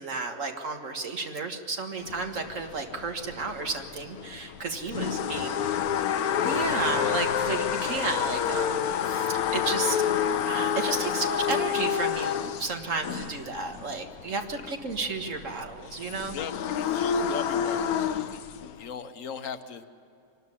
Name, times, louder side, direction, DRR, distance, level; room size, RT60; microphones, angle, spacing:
voice 1, 0.0-5.8 6.4-10.0 10.5-16.4, right 3 dB, 60° right, 4 dB, 1.9 m, -32 dB
sound 1, 2.0-18.9, left 8 dB, 80° left, 1.2 m, -29 dB
voice 2, 4.9-5.9 13.7-13.8 14.5-14.8 16.3-19.9, left 6 dB, 60° left, 9 dB, 1.4 m, -40 dB
25.5 x 12.5 x 9.8 m, 2.5 s
omnidirectional pair, 1.6 m